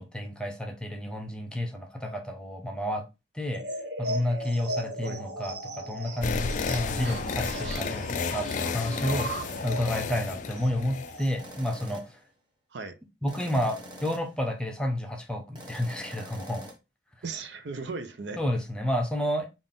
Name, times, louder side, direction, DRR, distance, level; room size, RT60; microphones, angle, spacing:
voice 1, 0.0-3.0 3.3-3.6 4.0-12.0 13.2-16.7 18.4-19.5, left 1 dB, 5° left, 0.6 m, -30 dB
sound 1, 3.5-11.6, right 1 dB, 90° right, 1.0 m, -38 dB
sound 2, 6.2-11.5, left 5 dB, 45° left, 0.3 m, -32 dB
voice 2, 7.0-8.0 12.7-13.0 17.2-18.4, right 4 dB, 75° right, 0.6 m, -38 dB
sound 3, 7.5-7.7 9.4-9.8 11.4-12.2 13.3-14.4 15.6-16.8, equal, 25° right, 0.9 m, -45 dB
3.8 x 2.5 x 3.7 m
head